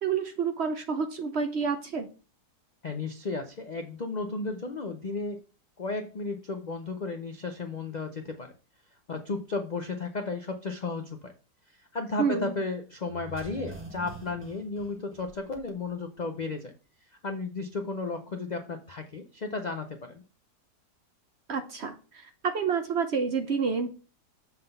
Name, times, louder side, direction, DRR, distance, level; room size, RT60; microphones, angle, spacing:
voice 1, 0.0-2.1 12.2-12.5 21.5-23.9, right 5 dB, 55° right, 7 dB, 0.8 m, -29 dB
voice 2, 2.8-5.4 5.8-8.5 9.1-11.3 11.7-16.7 17.1-20.2, left 3 dB, 70° left, 5 dB, 0.4 m, -34 dB
sound 1, 13.1-15.9 16.2-16.3, right 3 dB, 10° right, 1.5 m, -44 dB
7.3 x 3.8 x 5.3 m, 0.35 s
omnidirectional pair, 1.7 m